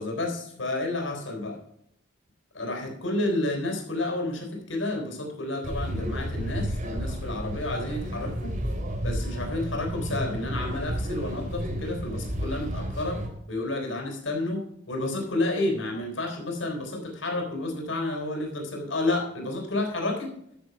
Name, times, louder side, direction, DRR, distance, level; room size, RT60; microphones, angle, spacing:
voice 1, 0.0-1.6 2.5-8.6 9.0-13.2 13.5-20.4, left 2 dB, 90° left, 3 dB, 4.0 m, -30 dB
sound 1, 5.6-13.3, equal, 45° right, 2.6 m, -32 dB
13.0 x 7.1 x 5.3 m, 0.75 s
head